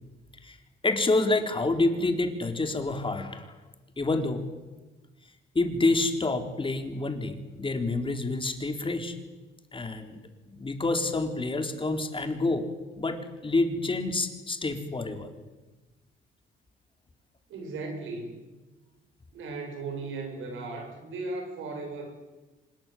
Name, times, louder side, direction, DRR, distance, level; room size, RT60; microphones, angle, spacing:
voice 1, 0.8-3.5 4.0-4.5 5.5-9.1 9.7-10.2 10.5-15.3, left 2 dB, 25° left, 6 dB, 4.1 m, -28 dB
voice 2, 17.5-18.4 19.3-22.1, right 3 dB, 85° right, 3 dB, 7.5 m, -36 dB
25.5 x 21.0 x 9.4 m, 1.2 s
cardioid pair, 90°, 20 cm